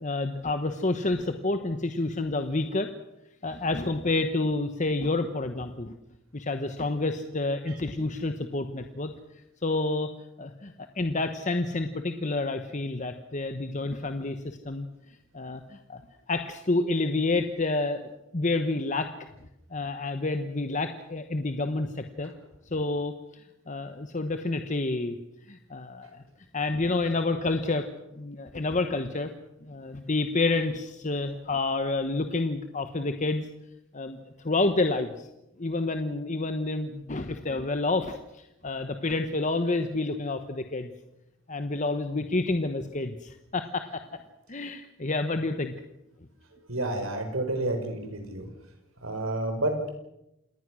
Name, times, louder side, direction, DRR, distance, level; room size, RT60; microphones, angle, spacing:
voice 1, 0.0-2.9 3.4-6.0 6.3-9.1 9.6-10.1 10.4-14.9 15.3-16.0 16.3-19.1 19.7-22.3 22.7-25.2 25.5-26.2 26.5-27.9 28.1-29.3 29.6-33.5 33.9-34.2 34.4-35.3 35.6-40.9 41.5-44.0 44.5-45.7, left 2 dB, 35° left, 7 dB, 1.2 m, -29 dB
voice 2, 46.7-48.5 49.0-49.9, right 2 dB, 85° right, 6 dB, 5.2 m, -30 dB
27.5 x 19.5 x 6.3 m, 0.88 s
head